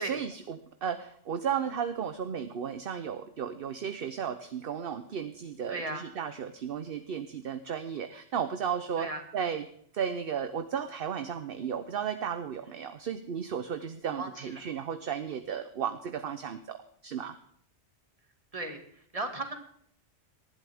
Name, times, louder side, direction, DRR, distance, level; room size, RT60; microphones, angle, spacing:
voice 1, 0.0-9.1 9.3-9.6 9.9-17.4, right 7 dB, 55° right, 10 dB, 1.0 m, -34 dB
voice 2, 5.7-6.0 9.0-9.2 14.0-14.6 18.5-18.8 19.1-19.6, right 2 dB, 30° right, 5 dB, 2.2 m, -36 dB
19.0 x 12.0 x 3.5 m, 0.65 s
omnidirectional pair, 1.2 m